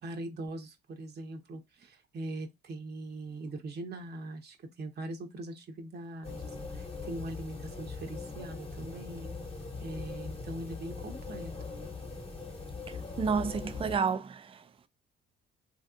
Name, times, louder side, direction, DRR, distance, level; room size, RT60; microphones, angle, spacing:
voice 1, 0.0-9.4 9.8-11.5, right 1 dB, 55° right, 0.9 m, -41 dB
sound 1, 6.2-14.0, left 4 dB, 30° left, 1.1 m, -41 dB
voice 2, 13.2-14.6, right 5 dB, 30° right, 0.4 m, -30 dB
3.3 x 2.8 x 2.4 m
cardioid pair, 90°, 20 cm